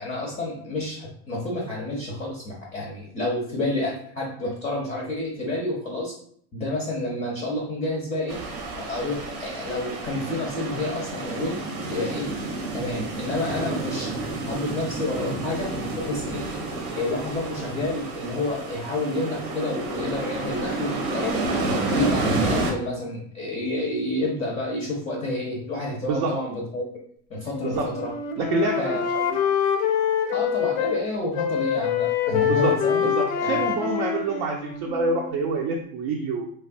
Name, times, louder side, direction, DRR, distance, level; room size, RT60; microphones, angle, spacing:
voice 1, 0.0-6.1 6.5-8.4 8.8-11.6 11.9-12.3 12.7-14.2 14.4-16.4 16.9-21.4 21.9-27.0 27.3-28.1 28.8-29.1 30.3-33.1 33.4-33.6, left 2 dB, 20° left, -3 dB, 0.5 m, -29 dB
sound 1, 8.3-22.7, right 2 dB, 85° right, 0.9 m, -30 dB
Wind instrument woodwind instrument, 27.5-31.0 31.3-35.4, left 8 dB, 80° left, 0.5 m, -25 dB
voice 2, 28.4-29.2 32.4-32.7 33.0-36.5, right 3 dB, 60° right, -1 dB, 0.5 m, -27 dB
3.1 x 2.2 x 2.5 m, 0.62 s
supercardioid pair, 135°, 40 cm